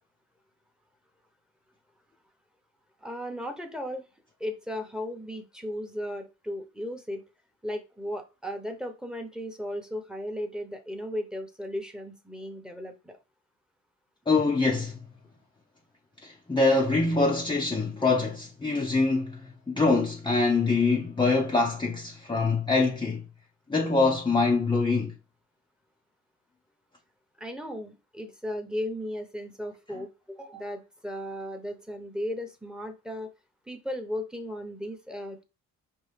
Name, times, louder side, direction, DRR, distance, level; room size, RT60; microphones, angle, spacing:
voice 1, 3.0-4.0 4.4-7.2 7.6-13.2 27.4-33.3 33.7-35.4, equal, ahead, 1.0 m, -36 dB
voice 2, 14.3-15.0 16.2-23.2 23.7-25.1, left 3 dB, 15° left, 0.7 m, -24 dB
5.3 x 2.7 x 3.3 m
cardioid pair, 90°, 30 cm